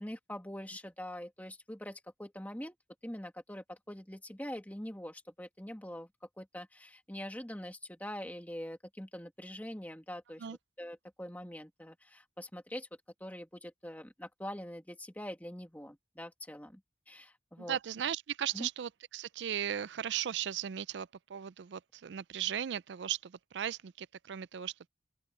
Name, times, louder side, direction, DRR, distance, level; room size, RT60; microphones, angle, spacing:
voice 1, 0.0-2.7 3.0-10.5 10.8-12.9 13.2-16.8 17.1-17.8 18.5-18.7, equal, 10° left, 2.2 m, -44 dB
voice 2, 17.6-24.9, right 10 dB, 75° right, 0.4 m, -37 dB
open air
head